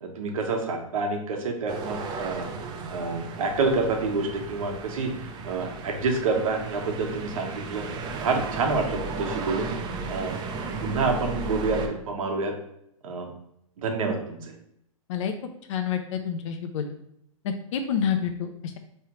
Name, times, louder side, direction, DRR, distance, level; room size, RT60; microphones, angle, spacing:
voice 1, 0.0-2.5 2.9-5.1 5.4-7.8 8.2-9.7 10.1-10.3 10.8-12.5 13.0-13.3 13.8-14.4, right 3 dB, 70° right, 3 dB, 1.1 m, -27 dB
sound 1, 1.7-11.9, right 3 dB, 25° right, 0.6 m, -35 dB
voice 2, 15.7-16.9 17.4-18.8, left 8 dB, 60° left, 6 dB, 0.6 m, -28 dB
4.5 x 3.3 x 2.9 m, 0.75 s
hypercardioid pair, 125°, 18 cm